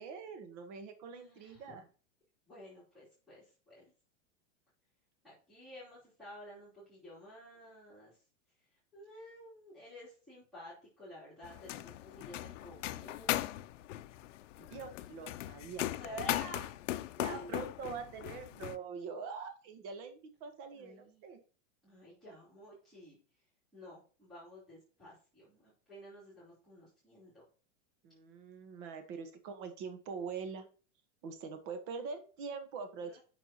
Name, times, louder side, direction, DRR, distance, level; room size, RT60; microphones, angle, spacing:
voice 1, 0.0-1.8 14.6-16.4 17.2-21.4 28.0-30.7 31.2-33.2, right 5 dB, 40° right, 8 dB, 1.2 m, -44 dB
voice 2, 1.1-1.8 2.5-3.9 5.2-8.2 8.9-13.5 15.9-16.7 17.2-17.7 20.7-21.2 21.8-23.2 23.7-27.4 33.0-33.2, equal, ahead, -11 dB, 3.1 m, -51 dB
sound 1, 11.4-18.8, left 14 dB, 80° left, 0.6 m, -39 dB
8.8 x 6.1 x 2.9 m, 0.38 s
supercardioid pair, 160°, 37 cm